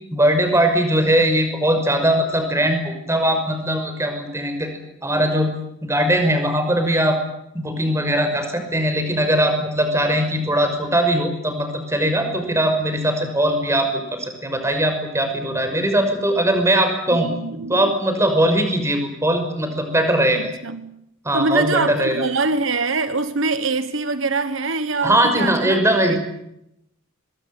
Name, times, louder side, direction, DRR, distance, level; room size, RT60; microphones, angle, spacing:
voice 1, 0.1-4.7 5.0-5.5 5.8-7.2 7.5-17.3 17.7-20.4 21.2-22.1 25.0-26.2, right 1 dB, 15° right, 5.9 m, -20 dB
voice 2, 17.1-18.0 20.3-21.0 21.3-26.2, right 3 dB, 65° right, 1.4 m, -24 dB
24.0 x 22.5 x 9.2 m
head